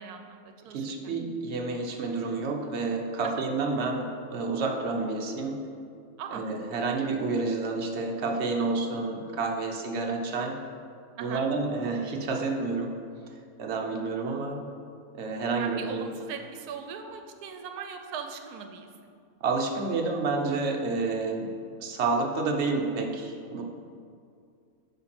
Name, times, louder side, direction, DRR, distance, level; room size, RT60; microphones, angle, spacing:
voice 1, 0.0-1.1 6.2-6.4 11.2-11.4 15.6-18.9, right 7 dB, 85° right, 6 dB, 1.2 m, -39 dB
voice 2, 0.7-5.7 6.3-10.5 11.2-13.0 13.6-14.6 15.1-16.1 19.4-21.5 21.8-23.6, right 3 dB, 50° right, 1 dB, 1.0 m, -29 dB
10.0 x 3.4 x 6.0 m, 2.3 s
omnidirectional pair, 1.6 m